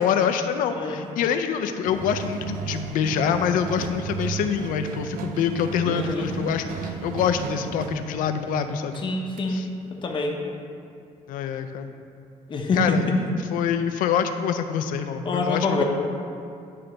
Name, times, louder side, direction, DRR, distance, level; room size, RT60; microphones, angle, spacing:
voice 1, 0.0-9.0 9.5-9.7 11.3-11.9 12.7-13.1 13.5-15.8, left 7 dB, 80° left, 8 dB, 0.4 m, -25 dB
sound 1, 1.8-8.6 8.9-9.0 9.4-9.5, right 7 dB, 90° right, 0.5 m, -34 dB
voice 2, 5.8-6.3 9.0-9.6 10.0-10.4 12.5-13.2 15.2-15.8, left 3 dB, 35° left, 2 dB, 0.7 m, -25 dB
9.9 x 3.3 x 3.8 m, 2.4 s
cardioid pair, 145°, 14 cm